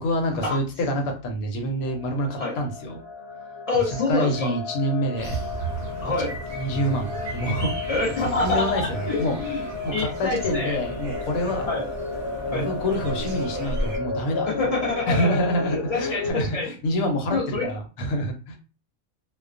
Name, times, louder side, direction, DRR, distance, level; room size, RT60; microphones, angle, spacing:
voice 1, 0.0-3.0 3.8-5.4 6.5-8.0 8.4-11.7 12.2-18.6, equal, 85° left, 3 dB, 1.1 m, -27 dB
sound 1, 1.8-16.3, left 3 dB, 5° right, 0.6 m, -33 dB
voice 2, 3.7-4.5 6.0-6.3 7.9-9.6 9.9-10.8 11.5-11.9 12.5-12.7 14.5-16.7 17.3-17.7, left 3 dB, 50° left, -2 dB, 0.4 m, -26 dB
sound 2, 5.2-14.0, right 2 dB, 50° right, 0.5 m, -34 dB
2.3 x 2.2 x 2.4 m, 0.35 s
omnidirectional pair, 1.5 m